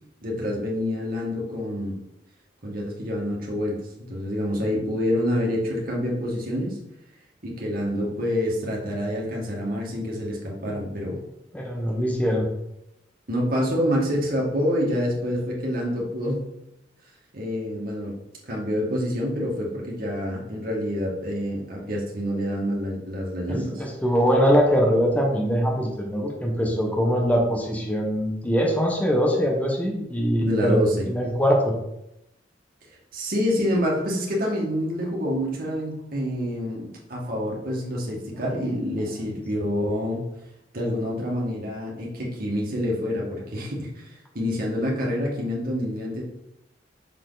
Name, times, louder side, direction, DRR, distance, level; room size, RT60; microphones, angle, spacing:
voice 1, 0.2-2.0 2.6-6.8 7.4-11.2 13.3-16.4 17.3-18.1 18.5-23.8 30.4-31.1 33.1-40.2 40.7-46.2, equal, 55° right, -2 dB, 1.9 m, -27 dB
voice 2, 11.5-12.5 23.5-30.8 31.1-31.7, equal, 10° left, -1 dB, 1.1 m, -22 dB
6.6 x 4.4 x 4.0 m, 0.85 s
head